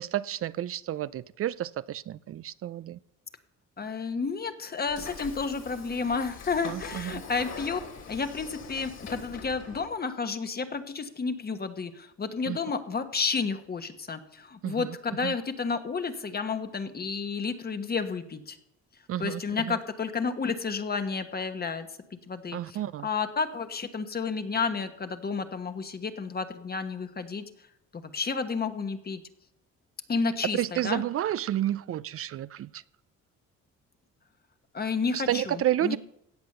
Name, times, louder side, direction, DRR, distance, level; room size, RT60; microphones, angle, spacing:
voice 1, 0.0-3.0 6.6-7.2 12.5-12.6 14.6-14.9 15.2-15.3 19.1-19.4 19.7-19.8 22.5-23.1 30.5-32.8 35.1-36.0, right 12 dB, 50° right, 0.4 m, -30 dB
voice 2, 3.8-7.8 8.1-18.6 19.2-27.4 27.9-29.2 30.1-31.0 34.7-36.0, left 5 dB, 35° left, 1.2 m, -31 dB
Train / Sliding door, 4.9-9.9, left 5 dB, 60° left, 2.7 m, -43 dB
16.0 x 8.2 x 6.7 m
cardioid pair, 100°, 29 cm